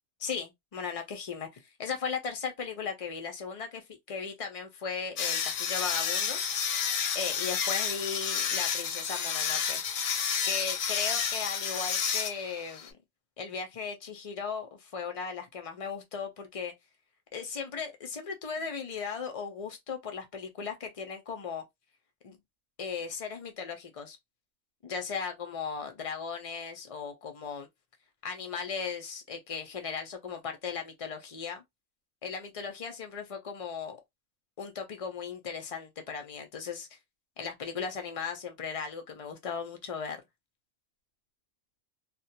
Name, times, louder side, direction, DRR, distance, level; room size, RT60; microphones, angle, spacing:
voice 1, 0.2-6.4 7.1-10.1 10.4-12.9 13.4-16.7 17.3-21.6 22.2-22.4 22.8-24.2 24.8-27.7 28.2-31.6 32.2-34.0 34.6-36.9 37.4-40.2, left 6 dB, 60° left, 0.3 m, -37 dB
sound 1, 5.2-12.9, left 7 dB, 85° left, 1.0 m, -30 dB
2.3 x 2.1 x 2.7 m
omnidirectional pair, 1.4 m